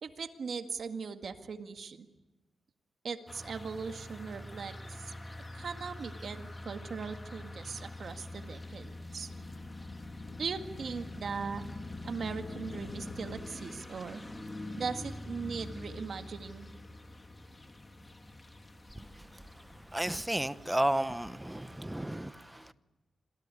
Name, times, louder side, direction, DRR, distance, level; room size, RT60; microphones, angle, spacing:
voice 1, 0.0-2.1 3.0-5.1 5.5-9.3 10.4-11.7 12.0-14.2 14.8-16.7, right 5 dB, 60° right, 1.9 m, -39 dB
sound 1, 3.3-21.8, left 2 dB, 20° left, 2.8 m, -45 dB
sound 2, 9.3-13.7 14.8-14.9, left 4 dB, 65° left, 3.7 m, -53 dB
voice 2, 19.0-22.7, right 1 dB, 10° right, 1.0 m, -34 dB
26.5 x 18.5 x 9.9 m
wide cardioid pair, 120°, 0 cm